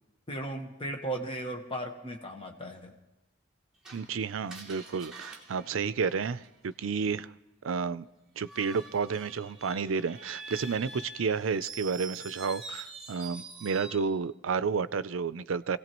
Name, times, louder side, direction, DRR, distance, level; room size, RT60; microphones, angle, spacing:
voice 1, 0.3-2.9, right 1 dB, 25° left, 2 dB, 1.2 m, -36 dB
Screech, 3.8-6.7 8.4-14.1, right 3 dB, 5° right, 2.7 m, -45 dB
voice 2, 3.9-7.3 7.6-8.1 8.4-15.8, right 5 dB, 85° right, 15 dB, 0.5 m, -31 dB
27.0 x 17.5 x 3.0 m, 0.99 s
head